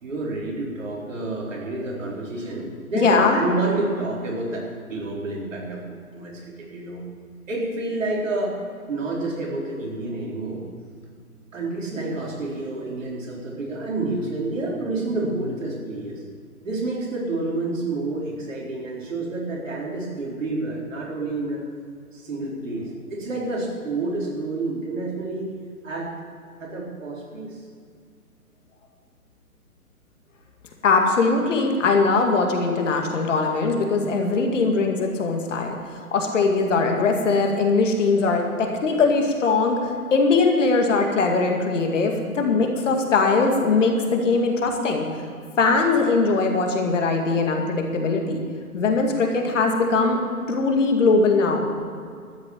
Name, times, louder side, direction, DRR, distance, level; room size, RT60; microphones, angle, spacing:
voice 1, 0.0-7.0 7.5-8.6 8.9-10.7 11.5-16.2 16.6-21.6 22.1-25.5 25.8-26.1 26.6-27.6, right 2 dB, 60° right, -3 dB, 4.2 m, -29 dB
voice 2, 2.9-3.4 30.8-45.1 45.6-48.4 48.7-50.2 50.5-51.7, left 4 dB, 55° left, 3 dB, 2.3 m, -21 dB
13.0 x 8.9 x 7.3 m, 2.2 s
figure-of-eight pair, 135°, 44 cm